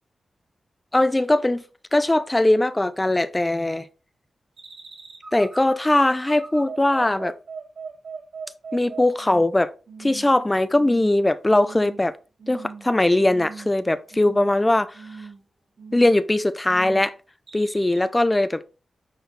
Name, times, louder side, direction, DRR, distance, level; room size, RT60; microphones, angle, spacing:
voice 1, 0.9-1.6 1.9-3.9 5.3-7.4 8.7-9.7 10.0-12.1 12.5-14.9 15.9-17.1 17.5-18.7, left 1 dB, 15° left, 0.5 m, -20 dB
sound 1, 4.6-9.5 9.9-10.3 10.7-11.2 11.6-12.0 12.4-12.9 13.3-13.8 14.1-14.6 14.9-15.4 15.8-16.3 16.6-17.1 17.5-18.0, right 5 dB, 60° right, 3.0 m, -39 dB
9.4 x 4.3 x 4.1 m
wide cardioid pair, 155°, 0 cm